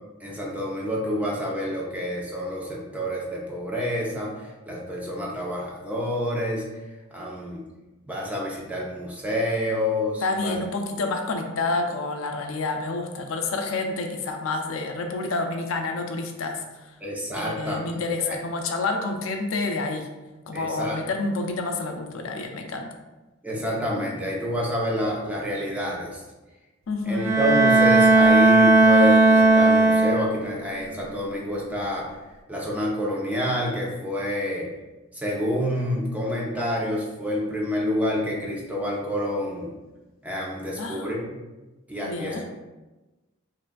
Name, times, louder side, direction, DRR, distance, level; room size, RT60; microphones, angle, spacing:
voice 1, 0.2-4.3 4.7-6.6 7.1-7.6 8.1-10.6 17.0-18.4 20.5-21.0 23.4-26.2 27.1-32.1 32.5-34.7 35.1-39.7 40.2-41.4 41.9-42.4, equal, 10° right, -3 dB, 0.7 m, -28 dB
voice 2, 10.2-16.6 17.3-20.1 20.5-22.9 26.9-27.2 40.8-41.1 42.0-42.4, left 3 dB, 85° left, 4 dB, 0.5 m, -28 dB
Bowed string instrument, 27.2-30.6, right 2 dB, 90° right, 0.5 m, -16 dB
5.8 x 2.5 x 2.3 m, 1.1 s
head